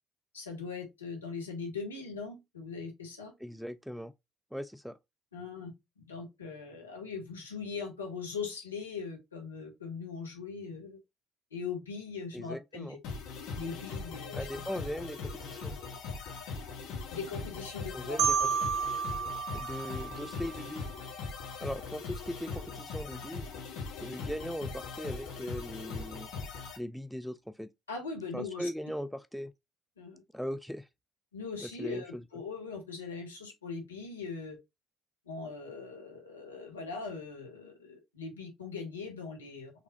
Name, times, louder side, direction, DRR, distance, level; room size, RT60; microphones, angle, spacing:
voice 1, 0.3-3.3 5.3-5.7 6.0-11.0 11.5-13.0 13.5-14.5 17.1-18.2 27.9-28.7 30.0-30.2 31.3-34.6 35.3-39.7, left 5 dB, 90° left, 1.1 m, -40 dB
voice 2, 3.4-4.1 4.5-5.0 12.3-13.0 14.3-15.8 17.9-18.5 19.5-20.8 21.6-23.5 24.0-26.3 26.8-27.7 28.3-29.5 30.3-30.9 31.6-32.2, equal, ahead, 0.3 m, -39 dB
sound 1, 13.0-26.8, left 4 dB, 65° left, 1.3 m, -40 dB
Marimba xylophone, 18.2-21.0, right 7 dB, 75° right, 0.4 m, -32 dB
4.2 x 3.3 x 2.7 m
figure-of-eight pair, 50°, 0 cm